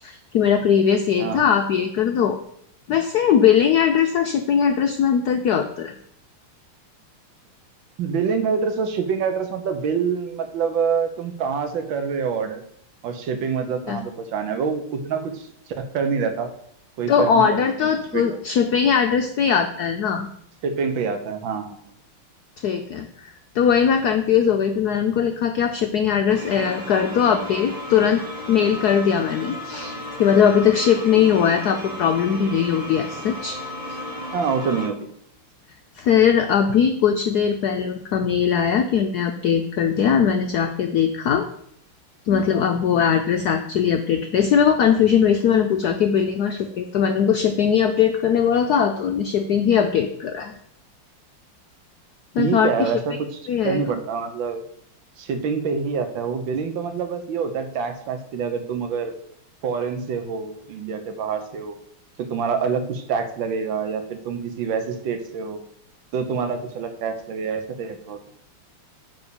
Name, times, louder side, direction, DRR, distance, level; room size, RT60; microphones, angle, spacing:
voice 1, 0.0-2.4 2.9-6.0 13.9-14.0 17.1-20.3 22.6-28.2 28.5-29.9 30.2-33.6 33.9-34.0 36.0-41.5 42.3-50.5 52.3-52.9 53.5-53.8, left 7 dB, 80° left, 6 dB, 0.9 m, -20 dB
voice 2, 8.0-12.6 13.0-15.5 15.8-16.5 17.0-18.4 20.6-21.8 34.3-35.1 52.4-54.6 55.2-59.1 59.6-61.8 62.3-65.6 66.1-68.2, right 6 dB, 65° right, 7 dB, 1.6 m, -26 dB
sound 1, 26.3-34.9, left 1 dB, 20° right, 1.1 m, -34 dB
9.0 x 4.1 x 7.0 m, 0.70 s
omnidirectional pair, 2.4 m